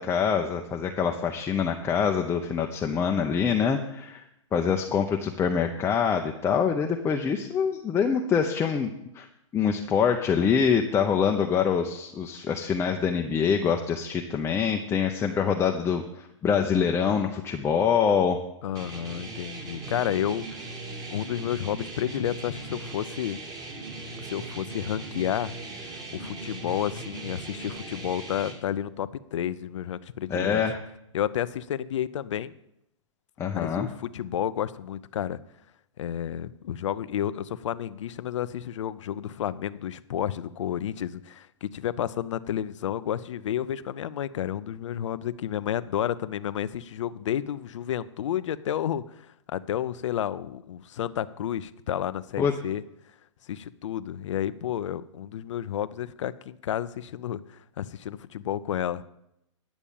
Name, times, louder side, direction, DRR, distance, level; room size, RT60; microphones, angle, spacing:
voice 1, 0.0-4.2 4.5-9.3 9.5-18.4 30.3-30.8 33.4-33.9 52.4-52.5, left 6 dB, 15° left, 3 dB, 0.7 m, -25 dB
voice 2, 18.6-20.6 21.1-23.4 24.2-25.5 26.1-30.6 31.1-32.5 33.4-35.4 36.0-49.2 49.5-52.8 53.5-59.0, left 10 dB, 70° left, 15 dB, 0.6 m, -31 dB
sound 1, 18.7-28.5, right 2 dB, 25° right, 2.4 m, -39 dB
10.0 x 7.2 x 7.1 m, 0.82 s
hypercardioid pair, 125°, 16 cm